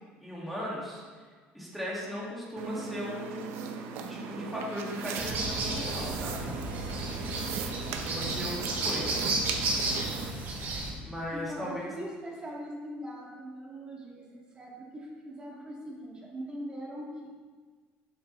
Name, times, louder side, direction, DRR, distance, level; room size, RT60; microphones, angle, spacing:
voice 1, 0.2-1.0 1.5-3.6 3.9-6.5 7.9-9.3 11.0-11.8, equal, ahead, -6 dB, 2.3 m, -37 dB
sound 1, 2.6-10.3, right 6 dB, 75° right, 0.9 m, -38 dB
sound 2, 5.2-10.9, right 2 dB, 55° right, 2.9 m, -33 dB
voice 2, 11.3-17.3, equal, 20° right, -4 dB, 2.2 m, -41 dB
10.0 x 8.1 x 3.4 m, 1.5 s
cardioid pair, 140°, 4 cm